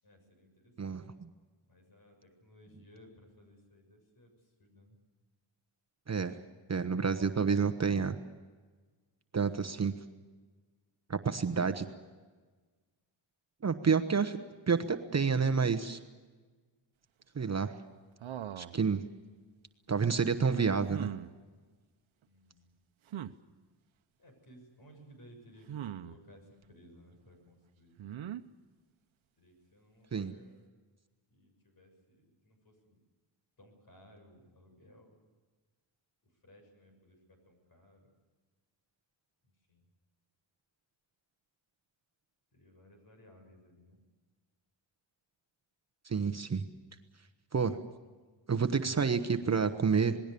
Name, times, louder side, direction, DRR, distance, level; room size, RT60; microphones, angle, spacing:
voice 1, 0.0-1.0 1.7-5.0 22.2-22.8 24.2-28.0 29.4-30.8 31.3-33.0 33.6-35.2 36.4-38.1 39.7-39.8 42.5-44.0, equal, 50° left, 4 dB, 7.0 m, -59 dB
voice 2, 0.8-1.3 6.1-6.4 6.7-8.2 9.3-9.9 11.1-11.9 13.6-14.4 14.7-16.0 17.3-17.7 18.6-19.0 19.9-21.1 30.1-30.3 46.0-46.6 47.5-47.8 48.5-50.2, right 5 dB, 35° right, 7 dB, 1.0 m, -29 dB
sound 1, 18.2-18.8 20.9-21.3 23.1-23.3 25.7-26.2 28.0-28.4, right 10 dB, 85° right, 1.0 m, -40 dB
27.0 x 20.0 x 6.9 m, 1.3 s
wide cardioid pair, 150°, 46 cm